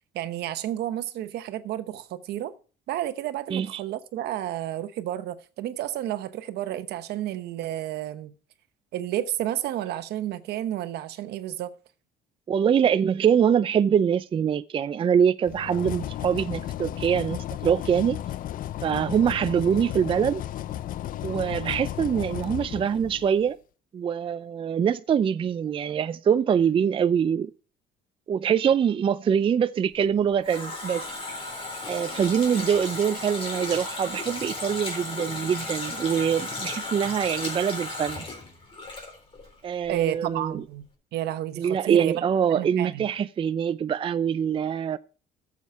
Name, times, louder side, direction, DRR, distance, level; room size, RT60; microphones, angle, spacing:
voice 1, 0.1-2.5 2.9-8.3 8.9-11.7 39.9-40.9 41.1-42.2 42.5-43.1, right 12 dB, 75° right, 1.0 m, -31 dB
voice 2, 3.5-3.8 12.5-18.2 18.8-20.4 21.2-23.6 23.9-27.5 28.3-31.1 31.9-38.2 39.6-40.6 41.6-45.0, right 8 dB, 30° right, 0.4 m, -24 dB
sound 1, 15.5-23.4, left 12 dB, 55° left, 0.5 m, -34 dB
Water tap faucet, 30.0-39.6 39.9-40.0, left 2 dB, 30° left, 3.8 m, -35 dB
11.5 x 7.4 x 4.7 m
cardioid pair, 110°, 17 cm